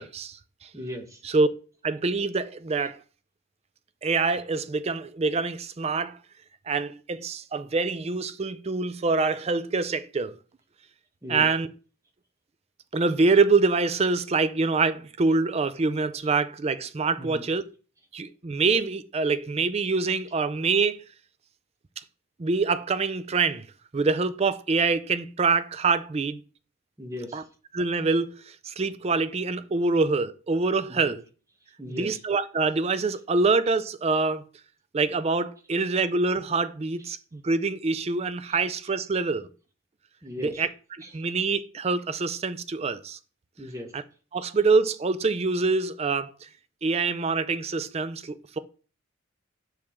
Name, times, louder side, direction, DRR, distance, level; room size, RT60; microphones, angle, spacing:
voice 1, 0.0-0.7 1.3-1.5 1.8-3.0 4.0-6.2 6.7-10.4 11.3-11.7 12.9-17.6 18.1-21.0 22.4-23.6 23.9-26.4 27.3-27.4 27.7-28.3 28.6-31.2 32.0-34.4 34.9-39.5 40.4-40.7 41.1-43.2 44.3-46.3 46.8-48.6, right 4 dB, 30° right, 0.4 m, -25 dB
voice 2, 0.7-1.3 2.8-2.9 11.2-11.5 16.2-16.3 17.2-17.6 27.0-27.5 30.9-31.2 31.8-32.2 38.5-38.6 40.2-40.7 41.0-41.2 43.6-43.9 44.3-44.4, left 1 dB, 15° right, 1.0 m, -38 dB
5.8 x 4.9 x 3.5 m
head